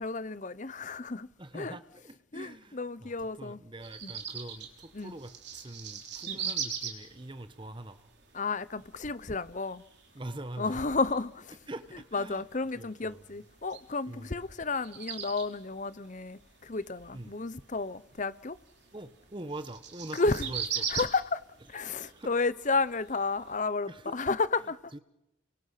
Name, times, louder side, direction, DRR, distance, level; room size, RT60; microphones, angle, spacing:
voice 1, 0.0-1.3 1.5-1.8 2.3-3.6 4.0-4.1 4.9-5.1 6.3-6.5 8.3-9.8 10.6-11.5 12.1-18.6 20.1-20.5 20.9-21.4 21.7-25.0, left 3 dB, 35° left, 0.8 m, -32 dB
voice 2, 1.4-8.0 10.1-10.8 11.7-12.4 12.7-13.2 14.1-14.4 17.1-17.3 18.9-20.9 22.0-22.3 23.9-24.2 24.9-25.0, right 1 dB, 25° right, 1.2 m, -43 dB
sound 1, 3.8-23.6, right 7 dB, 55° right, 3.6 m, -42 dB
30.0 x 23.5 x 5.8 m
head